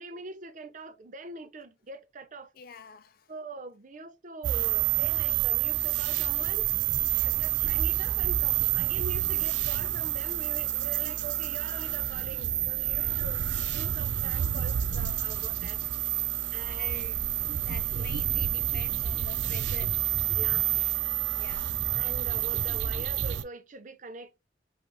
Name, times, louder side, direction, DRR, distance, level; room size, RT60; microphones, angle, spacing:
voice 1, 0.0-2.5 3.3-6.7 7.2-13.4 13.7-15.8 16.5-17.3 17.9-18.1 20.3-20.7 21.9-24.4, right 3 dB, 45° right, 0.6 m, -43 dB
voice 2, 2.6-3.3 7.1-7.5 9.7-9.8 12.9-13.3 15.3-15.4 16.7-17.2 17.6-20.1 21.4-21.8, left 7 dB, 55° left, 0.6 m, -47 dB
sound 1, 4.4-23.4, right 12 dB, 85° right, 0.5 m, -28 dB
5.0 x 2.6 x 3.5 m
head